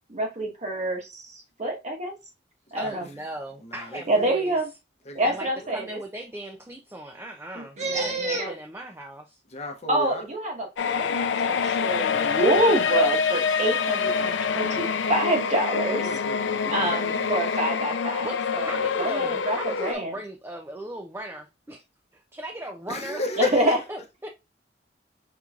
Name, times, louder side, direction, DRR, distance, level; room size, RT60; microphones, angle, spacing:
voice 1, 0.1-2.1 2.7-3.0 4.1-4.7 5.1-6.0 7.5-8.5 9.9-16.0 16.7-18.3 18.5-20.1 23.4-23.8, right 1 dB, 40° right, 1.2 m, -26 dB
voice 2, 2.7-4.6 5.2-9.4 18.2-18.4 18.6-21.8 22.1-24.3, right 1 dB, 15° right, 0.5 m, -37 dB
voice 3, 3.6-4.3 5.0-5.8 7.8-8.2 9.5-10.2 16.0-17.6 22.9-23.8, left 2 dB, 35° left, 0.8 m, -34 dB
sound 1, 10.8-19.9, left 6 dB, 90° left, 0.5 m, -26 dB
5.2 x 3.0 x 2.4 m
head